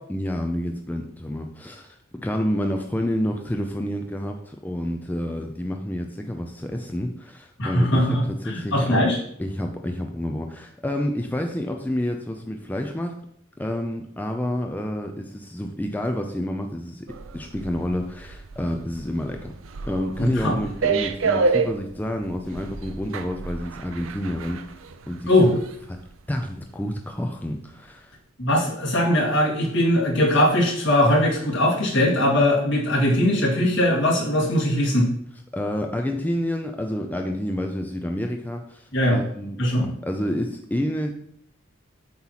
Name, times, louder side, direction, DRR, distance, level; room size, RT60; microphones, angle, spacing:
voice 1, 0.1-9.1 9.4-13.2 13.6-17.1 17.3-19.5 19.8-24.8 25.1-25.6 25.9-26.0 26.3-28.2 35.5-41.1, left 1 dB, 10° left, 3 dB, 0.4 m, -29 dB
voice 2, 7.6-9.2 20.2-20.6 25.3-25.5 28.4-35.1 38.9-39.2 39.6-39.9, left 1 dB, 60° left, -3 dB, 2.2 m, -20 dB
sound 1, 17.1-26.1 26.5-26.7, right 4 dB, 80° right, 0.5 m, -29 dB
7.7 x 3.0 x 5.6 m, 0.68 s
head